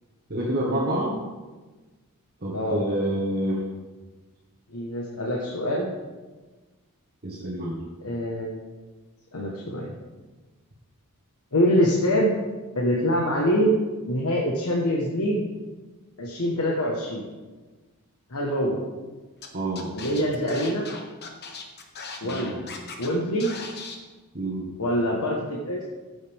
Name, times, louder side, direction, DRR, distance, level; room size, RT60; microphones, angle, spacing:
voice 1, 0.3-1.2 2.4-3.6 7.2-7.8 19.5-19.9 22.2-22.7 24.3-24.7, right 1 dB, 45° right, -5 dB, 1.6 m, -28 dB
voice 2, 4.7-5.9 8.0-8.6 9.3-9.9 11.5-12.3 12.7-13.7 14.1-15.4 16.2-17.2 18.3-18.8 19.9-20.8 22.2-22.6 23.0-23.5 24.8-25.8, equal, 75° left, -2 dB, 1.4 m, -24 dB
Scratching (performance technique), 19.4-19.5 19.7-23.1 23.4-23.9, left 4 dB, 50° left, 1.3 m, -38 dB
15.0 x 7.9 x 3.6 m, 1.3 s
head